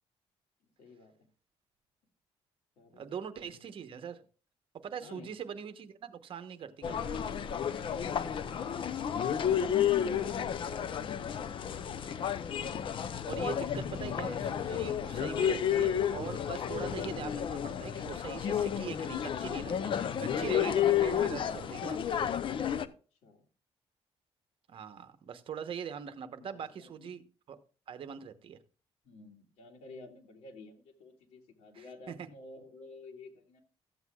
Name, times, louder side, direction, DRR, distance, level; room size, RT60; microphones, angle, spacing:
voice 1, 0.8-1.3 2.8-3.6 5.0-5.3 7.8-13.1 23.2-23.5 26.4-27.1 29.0-33.6, left 3 dB, 85° left, 1 dB, 2.0 m, -52 dB
voice 2, 2.9-4.2 4.7-7.2 12.6-12.7 13.3-22.2 24.7-27.6 27.9-28.6 31.7-32.2, right 7 dB, 55° right, 10 dB, 0.9 m, -42 dB
sound 1, 6.8-22.9, left 9 dB, 50° left, 0.6 m, -31 dB
14.0 x 8.0 x 2.3 m, 0.36 s
cardioid pair, 120°, 11 cm